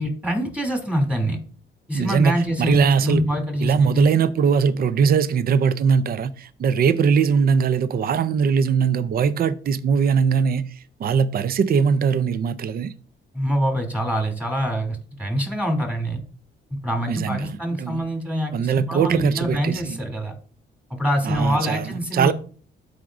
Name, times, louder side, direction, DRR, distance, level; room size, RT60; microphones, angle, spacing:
voice 1, 0.0-1.4 1.9-4.1 13.3-16.2 16.8-20.4 20.9-22.3, equal, 5° right, 2.7 m, -25 dB
voice 2, 1.9-3.2 3.6-10.7 11.0-12.9 17.1-18.0 18.5-20.0 21.2-22.3, right 6 dB, 50° right, 0.5 m, -21 dB
13.0 x 5.0 x 2.5 m
cardioid pair, 90°, 20 cm